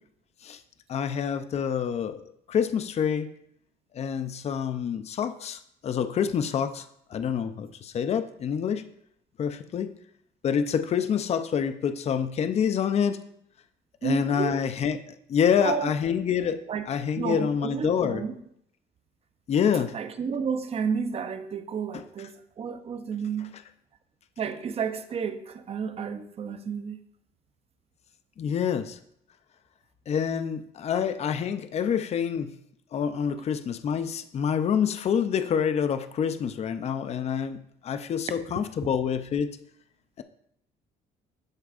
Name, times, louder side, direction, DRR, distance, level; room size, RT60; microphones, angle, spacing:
voice 1, 0.9-2.2 2.5-3.3 3.9-6.9 7.1-8.8 9.4-9.9 10.4-13.2 14.0-15.0 15.3-18.2 19.5-19.9 28.4-29.0 30.1-32.5 32.9-39.5, left 7 dB, 40° left, 10 dB, 0.5 m, -27 dB
voice 2, 14.0-14.6 15.6-15.9 16.7-16.9 17.2-18.3 19.7-23.6 24.4-27.0, right 6 dB, 35° right, 10 dB, 0.6 m, -31 dB
13.0 x 4.5 x 2.5 m, 0.70 s
cardioid pair, 110°, 17 cm